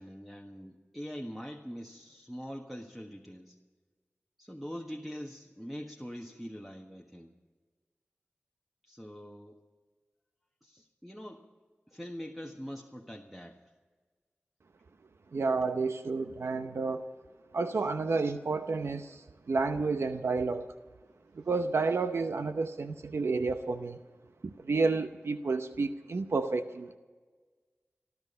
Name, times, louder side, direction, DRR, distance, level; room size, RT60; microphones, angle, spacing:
voice 1, 0.0-3.6 4.4-7.3 8.8-9.6 10.6-11.4 11.9-13.6 17.8-17.9, equal, ahead, 2 dB, 1.4 m, -43 dB
voice 2, 15.3-17.1 17.5-20.7 21.4-24.0 24.4-27.0, right 4 dB, 80° right, 9 dB, 0.7 m, -30 dB
19.5 x 13.0 x 5.5 m, 1.4 s
cardioid pair, 40°, 4 cm